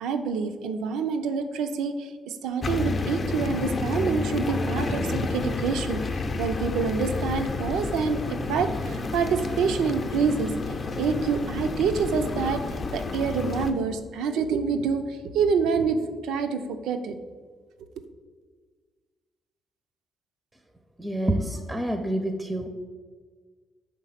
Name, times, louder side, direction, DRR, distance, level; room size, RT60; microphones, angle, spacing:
voice 1, 0.0-10.5 11.0-12.6 12.9-17.2, right 5 dB, 85° right, 8 dB, 0.5 m, -27 dB
sound 1, 2.6-13.7, left 3 dB, 40° left, 0.5 m, -30 dB
voice 2, 21.0-22.7, right 1 dB, 15° right, 6 dB, 0.5 m, -27 dB
5.2 x 3.6 x 5.6 m, 1.5 s
cardioid pair, 90°, 0 cm